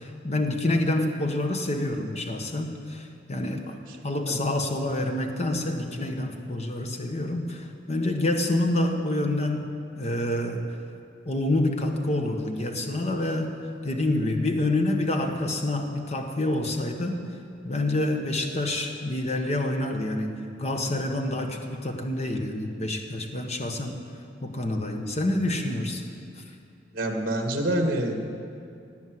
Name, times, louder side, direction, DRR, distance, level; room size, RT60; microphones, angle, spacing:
voice 1, 0.0-3.8 4.0-10.8 11.2-17.3 17.6-24.0 24.4-26.1 26.4-26.5, left 1 dB, 35° left, 4 dB, 1.3 m, -27 dB
voice 2, 26.9-28.1, right 1 dB, 50° right, 3 dB, 1.8 m, -27 dB
17.0 x 9.3 x 7.8 m, 2.5 s
head